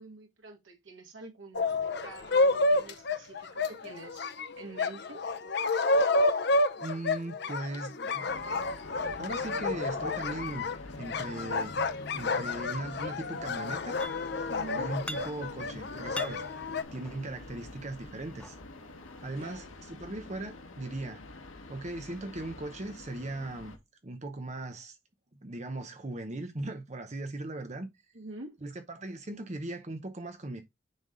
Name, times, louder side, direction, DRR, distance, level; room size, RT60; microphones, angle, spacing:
voice 1, 0.0-4.3 4.6-5.2 14.5-14.9 19.4-19.7 28.1-28.6, right 2 dB, 75° right, 1.9 m, -46 dB
sound 1, 1.5-16.8, left 2 dB, 55° left, 0.6 m, -30 dB
voice 2, 6.8-8.3 9.2-10.7 11.0-11.8 12.1-14.0 14.8-16.4 16.9-18.6 19.2-21.2 21.7-23.7 24.0-25.0 25.4-27.9 28.6-30.6, right 2 dB, 35° right, 0.8 m, -38 dB
sound 2, 8.3-23.8, left 2 dB, 85° left, 1.4 m, -46 dB
sound 3, 14.0-14.5 14.8-15.7 16.0-17.5 18.2-19.3, left 1 dB, 5° left, 0.3 m, -44 dB
9.2 x 3.5 x 3.8 m
head